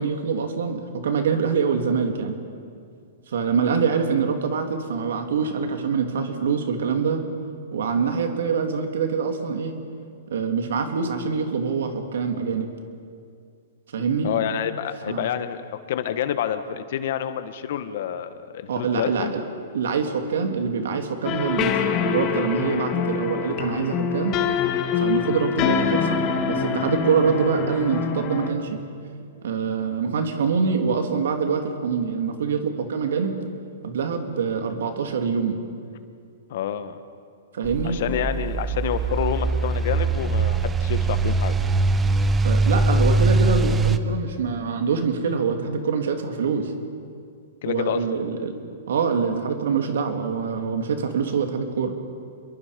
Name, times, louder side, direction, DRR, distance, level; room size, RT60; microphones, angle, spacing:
voice 1, 0.0-2.4 3.3-7.2 7.7-9.7 10.3-12.7 13.9-14.3 15.1-15.3 18.7-19.4 19.7-21.7 22.0-24.4 25.0-26.2 26.5-28.8 29.4-33.3 33.8-35.6 37.5-38.0 42.4-46.7 47.7-48.6 48.9-51.9, right 5 dB, 75° right, 4 dB, 3.1 m, -25 dB
voice 2, 14.2-19.3 36.5-37.0 37.8-41.6 47.6-48.0, left 10 dB, 60° left, 10 dB, 1.6 m, -28 dB
sound 1, 21.2-28.5, left 7 dB, 35° left, 2.2 m, -25 dB
sound 2, 37.6-44.0, right 3 dB, 15° right, 1.0 m, -22 dB
28.0 x 22.5 x 5.3 m, 2.3 s
hypercardioid pair, 130°, 0 cm